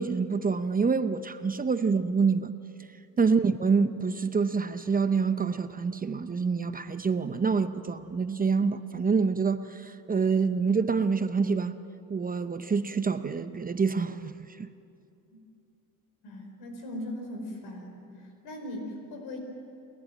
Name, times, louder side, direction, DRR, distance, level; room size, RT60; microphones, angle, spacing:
voice 1, 0.0-2.5 3.2-11.7 12.1-14.3 14.6-14.7, right 5 dB, 25° right, 0.7 m, -26 dB
voice 2, 16.2-18.0 18.4-19.4, left 1 dB, 75° left, 4.9 m, -39 dB
29.0 x 11.0 x 9.1 m
supercardioid pair, 85°, 37 cm